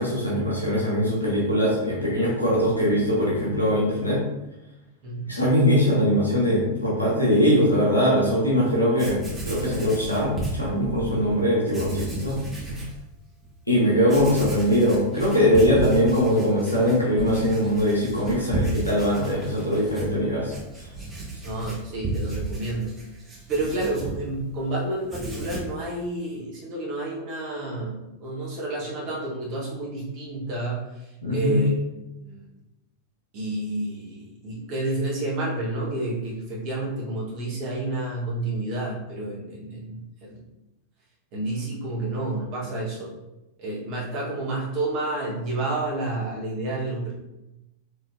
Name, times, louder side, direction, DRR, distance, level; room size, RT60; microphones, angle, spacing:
voice 1, 0.0-4.2 5.2-12.3 12.7-12.8 13.7-20.5 20.8-20.9 31.2-31.6, equal, 85° left, -6 dB, 1.2 m, -21 dB
Writing, 8.7-8.8 8.9-11.1 11.7-13.0 13.4-13.5 14.0-24.7 25.0-25.8, right 2 dB, 15° right, 1.5 m, -34 dB
voice 2, 21.4-23.0 23.5-30.8 31.3-31.7 32.2-32.4 33.3-40.4 41.3-43.1 43.6-47.1, right 2 dB, 40° right, -5 dB, 1.5 m, -30 dB
4.9 x 3.5 x 2.7 m, 0.96 s
figure-of-eight pair, 90°, 0 cm